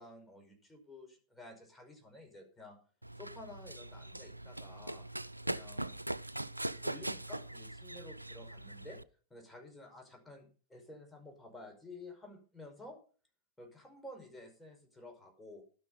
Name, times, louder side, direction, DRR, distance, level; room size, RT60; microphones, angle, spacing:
voice 1, 0.0-2.8 3.2-5.1 5.5-6.0 6.6-9.0 9.3-13.0 13.6-15.7, left 2 dB, 5° left, 2 dB, 5.2 m, -52 dB
Run, 3.0-9.0, right 1 dB, 85° right, 0.5 m, -41 dB
12.0 x 10.0 x 5.4 m, 0.39 s
figure-of-eight pair, 90°, 0 cm